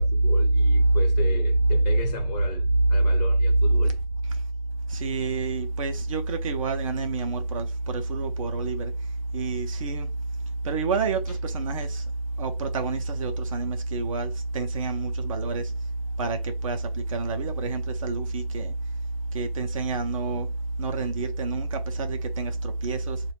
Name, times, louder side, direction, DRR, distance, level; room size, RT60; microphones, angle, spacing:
voice 1, 0.0-4.0 21.0-21.1, left 5 dB, 45° left, 0.9 m, -37 dB
voice 2, 0.7-1.0 4.9-8.9 9.3-10.1 10.6-12.0 12.4-15.7 16.2-18.7 19.3-20.5 20.8-23.2, right 3 dB, 35° right, 0.4 m, -28 dB
3.8 x 2.2 x 2.8 m
figure-of-eight pair, 135°, 29 cm